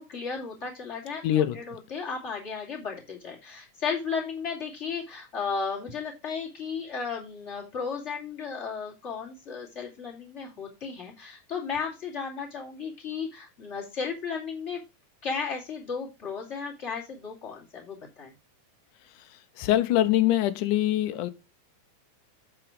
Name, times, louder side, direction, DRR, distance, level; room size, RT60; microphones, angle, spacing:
voice 1, 0.0-14.8 15.2-18.3, left 5 dB, 25° left, 2.7 m, -34 dB
voice 2, 1.2-1.6 19.6-21.3, left 13 dB, 80° left, 2.3 m, -23 dB
7.9 x 6.0 x 4.9 m
omnidirectional pair, 3.6 m